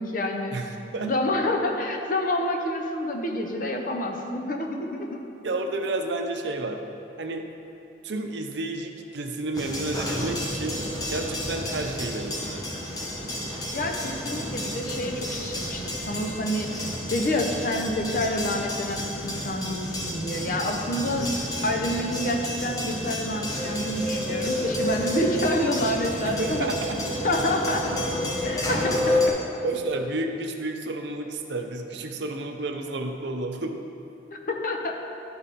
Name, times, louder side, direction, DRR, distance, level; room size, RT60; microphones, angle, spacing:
voice 1, 0.0-0.5 1.0-5.2 13.7-21.3 21.6-26.7 27.2-27.9 28.4-29.4 34.3-35.0, left 1 dB, 50° left, 2 dB, 0.8 m, -28 dB
voice 2, 0.5-1.1 5.4-6.8 7.2-7.5 8.0-10.8 11.1-12.7 21.1-21.4 26.3-27.0 29.1-29.2 29.6-33.8, right 2 dB, 75° right, 5 dB, 0.7 m, -31 dB
sound 1, 9.5-29.3, left 1 dB, 20° left, 1.0 m, -30 dB
11.5 x 5.5 x 4.2 m, 2.8 s
head